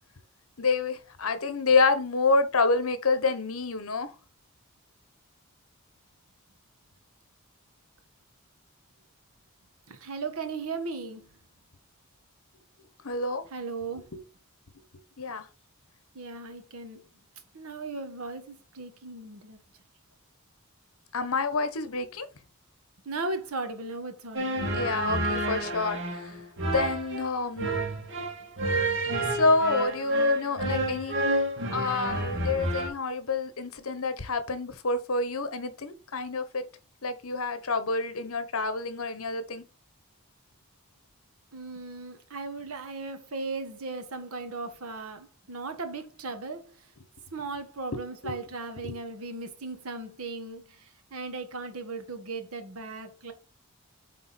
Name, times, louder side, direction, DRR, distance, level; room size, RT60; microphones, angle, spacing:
voice 1, 0.6-4.1 13.0-13.4 14.1-14.2 15.2-15.5 21.1-22.3 24.7-26.4 26.6-27.7 29.3-31.1 31.7-36.6 37.0-39.6 47.9-48.4 48.8-48.9, left 3 dB, 70° left, 1.1 m, -28 dB
voice 2, 9.9-11.3 13.5-14.1 16.1-17.0 17.5-19.6 23.0-24.6 41.5-46.9 47.3-53.3, right 3 dB, 75° right, 1.3 m, -37 dB
sound 1, 24.3-32.9, right 1 dB, 55° right, 2.0 m, -29 dB
8.4 x 3.7 x 4.2 m
head